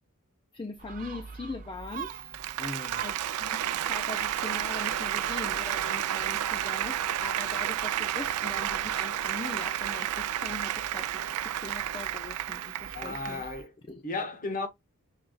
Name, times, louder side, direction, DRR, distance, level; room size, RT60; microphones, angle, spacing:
voice 1, 0.5-2.1 3.0-13.4 13.9-14.0, left 3 dB, 20° left, 0.4 m, -41 dB
Gull seagull, 0.8-13.6, right 6 dB, 35° right, 0.6 m, -46 dB
Applause, 1.9-13.5, right 11 dB, 80° right, 0.4 m, -31 dB
voice 2, 2.6-3.1 12.9-13.7 14.0-14.7, left 3 dB, 40° left, 0.9 m, -35 dB
6.4 x 2.3 x 2.3 m
head